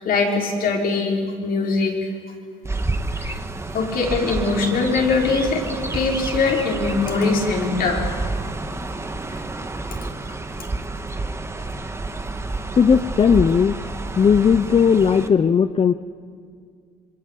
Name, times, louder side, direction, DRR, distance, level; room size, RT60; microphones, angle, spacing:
voice 1, 0.0-2.1 3.2-3.4 3.7-8.1, left 4 dB, 60° left, 0 dB, 5.7 m, -22 dB
Chirp tweet, 2.6-15.3, right 2 dB, 15° right, 1.7 m, -29 dB
voice 2, 12.8-13.8 14.2-15.9, left 6 dB, 30° left, 12 dB, 0.7 m, -16 dB
26.5 x 23.5 x 8.6 m, 2.2 s
cardioid pair, 110°, 17 cm